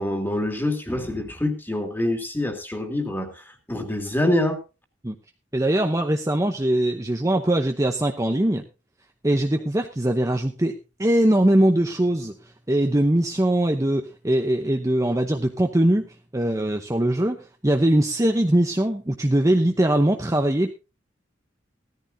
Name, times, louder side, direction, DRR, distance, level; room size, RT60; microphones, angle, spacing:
voice 1, 0.0-4.6, left 1 dB, 10° left, 5 dB, 2.4 m, -26 dB
voice 2, 5.5-8.6 9.2-12.3 12.7-20.7, right 1 dB, 15° right, 4 dB, 0.8 m, -21 dB
16.5 x 13.5 x 2.7 m, 0.29 s
head